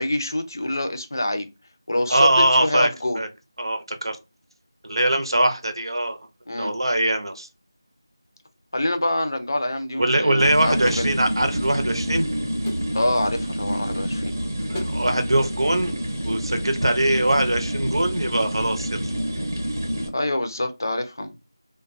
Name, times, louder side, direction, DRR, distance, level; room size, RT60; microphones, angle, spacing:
voice 1, 0.0-1.5 1.9-3.2 6.5-6.7 8.7-11.1 12.9-14.3 20.1-21.3, left 1 dB, 50° left, 0.5 m, -26 dB
voice 2, 2.1-2.9 3.1-3.3 3.6-4.2 4.8-6.2 6.5-7.5 10.0-12.3 14.7-16.0 16.2-19.0, right 1 dB, 85° right, 0.7 m, -22 dB
sound 1, 10.4-20.1, equal, 40° right, 0.7 m, -28 dB
sound 2, 10.8-11.1 11.5-12.2 12.6-13.0 14.7-15.0 15.2-15.7 16.8-16.9, left 1 dB, 5° left, 0.5 m, -37 dB
2.3 x 2.2 x 2.5 m
figure-of-eight pair, 175°, 2 cm